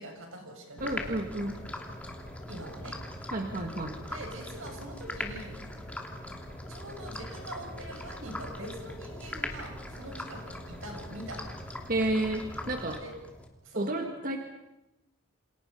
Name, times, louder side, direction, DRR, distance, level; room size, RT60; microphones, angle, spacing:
voice 1, 0.0-1.1 2.5-3.0 4.0-5.6 6.7-11.5 13.0-13.1 13.6-13.9, right 1 dB, 70° right, 3 dB, 7.4 m, -43 dB
sound 1, 0.8-13.5, left 1 dB, 5° left, 2.8 m, -40 dB
voice 2, 0.8-1.6 3.3-4.0 11.9-13.0 13.8-14.4, right 1 dB, 40° right, 4 dB, 1.9 m, -31 dB
29.0 x 27.5 x 5.6 m, 0.92 s
head